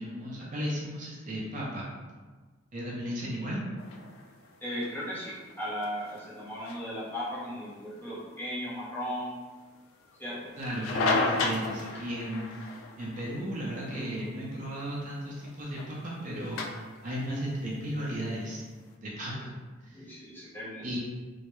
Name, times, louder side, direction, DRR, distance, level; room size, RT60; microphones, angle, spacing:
voice 1, 0.0-1.9 2.7-3.6 10.6-12.7 13.0-18.6 19.0-19.6 19.8-20.1 20.8-21.0, equal, 40° right, -5 dB, 0.5 m, -35 dB
sound 1, 3.8-18.9, left 3 dB, 85° left, 0.3 m, -36 dB
voice 2, 4.6-9.3 10.2-10.5 19.3-19.4 19.9-21.0, equal, 10° left, -9 dB, 0.6 m, -36 dB
2.2 x 2.0 x 2.9 m, 1.3 s
head